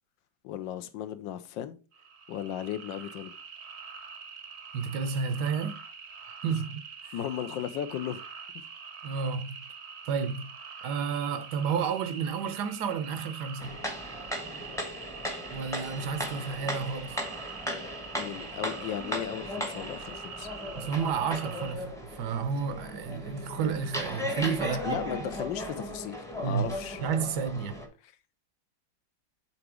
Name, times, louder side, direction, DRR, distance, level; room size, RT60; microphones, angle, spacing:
voice 1, 0.4-1.8 2.3-3.3 7.1-8.2 18.1-20.5 24.8-27.0, left 10 dB, 85° left, 1.4 m, -36 dB
sound 1, 1.9-21.7, right 6 dB, 55° right, 0.8 m, -45 dB
voice 2, 4.7-5.8 6.2-7.1 9.0-9.6 10.0-10.5 10.8-13.8 15.5-17.2 20.7-25.0 26.4-26.7 27.0-27.8, right 6 dB, 75° right, 1.1 m, -31 dB
sound 2, 13.6-27.9, equal, 5° left, 0.7 m, -37 dB
5.9 x 4.0 x 4.8 m
omnidirectional pair, 2.0 m